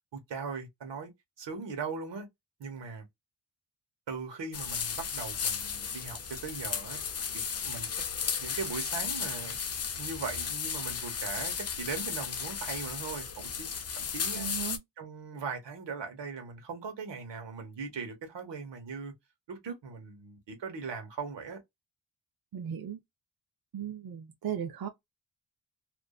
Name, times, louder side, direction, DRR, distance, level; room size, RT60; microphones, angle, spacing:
voice 1, 0.1-1.1 1.4-2.3 2.6-3.0 4.1-7.0 7.3-7.9 8.4-9.6 9.9-14.5 15.0-19.1 19.5-21.6, right 5 dB, 75° right, 1.1 m, -39 dB
sound 1, 4.5-14.8, left 6 dB, 35° left, 0.4 m, -35 dB
voice 2, 14.3-14.8 22.5-23.0 23.7-24.9, right 9 dB, 55° right, 0.5 m, -36 dB
2.5 x 2.3 x 2.3 m
wide cardioid pair, 130°, 43 cm